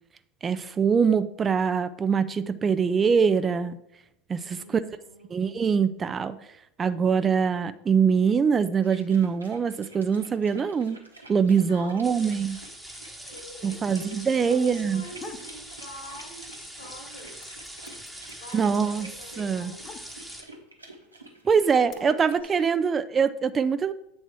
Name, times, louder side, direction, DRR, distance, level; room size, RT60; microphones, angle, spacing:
voice 1, 0.4-3.8 4.3-4.8 5.3-6.4 6.8-11.0 11.3-12.6 13.6-15.0 18.5-19.1 19.4-19.7 21.4-23.9, right 6 dB, 25° right, 13 dB, 0.3 m, -23 dB
voice 2, 4.4-5.4 11.6-12.3 13.1-17.6 18.4-20.2 21.9-22.9, left 1 dB, 75° left, 1 dB, 1.8 m, -46 dB
sound 1, 8.8-22.4, right 2 dB, 90° right, 1.0 m, -49 dB
sound 2, 12.0-20.4, right 1 dB, ahead, 1.0 m, -43 dB
sound 3, 15.2-15.6 16.0-16.7 16.9-20.5 21.3-21.9, left 5 dB, 35° left, 0.8 m, -46 dB
7.8 x 4.1 x 4.7 m, 0.81 s
figure-of-eight pair, 80°, 0 cm